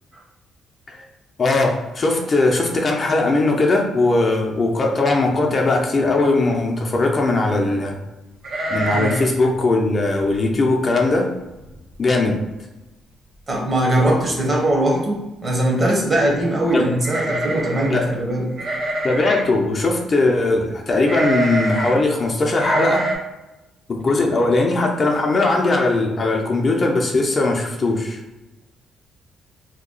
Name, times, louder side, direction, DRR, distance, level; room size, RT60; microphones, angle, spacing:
voice 1, 1.4-7.9 8.7-11.3 12.0-12.4 16.7-16.9 17.9-18.0 19.0-23.0 23.9-28.2, left 2 dB, 40° left, 1 dB, 0.5 m, -19 dB
sound 1, 8.4-9.4 9.7-9.8 10.2-10.5 11.0-11.1 11.4-11.9 12.3-12.4 13.5-13.6 13.9-14.3 17.0-18.0 18.6-19.5 21.0-22.0 22.5-23.1, right 2 dB, 65° right, 0.8 m, -25 dB
voice 2, 13.5-18.5, right 1 dB, 35° right, -1 dB, 1.0 m, -20 dB
2.8 x 2.3 x 3.8 m, 1.0 s
cardioid pair, 90°, 0 cm